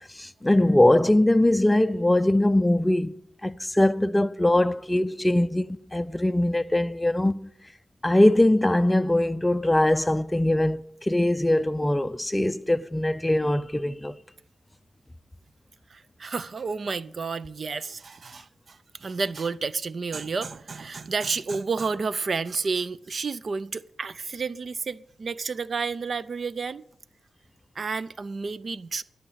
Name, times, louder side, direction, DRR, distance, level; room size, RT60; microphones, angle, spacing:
voice 1, 0.2-3.1 3.4-7.4 8.0-14.2, left 1 dB, 15° left, 0.4 m, -22 dB
voice 2, 15.9-26.8 27.8-29.0, right 4 dB, 50° right, 0.5 m, -31 dB
13.0 x 5.8 x 8.6 m
cardioid pair, 80°, 0 cm